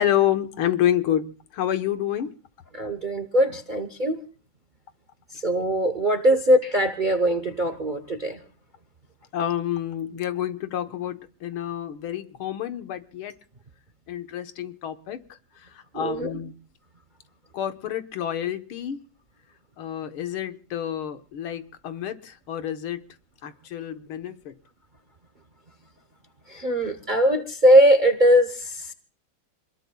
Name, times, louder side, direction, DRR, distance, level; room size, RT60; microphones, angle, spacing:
voice 1, 0.0-2.3 9.3-13.3 14.1-15.2 15.6-16.5 17.5-19.0 19.8-23.0 23.4-24.5, left 11 dB, 85° left, 9 dB, 2.0 m, -28 dB
voice 2, 2.7-4.2 5.3-8.4 15.9-16.3 26.5-28.9, equal, 40° right, 9 dB, 0.7 m, -21 dB
27.5 x 20.5 x 2.3 m, 0.37 s
omnidirectional pair, 2.2 m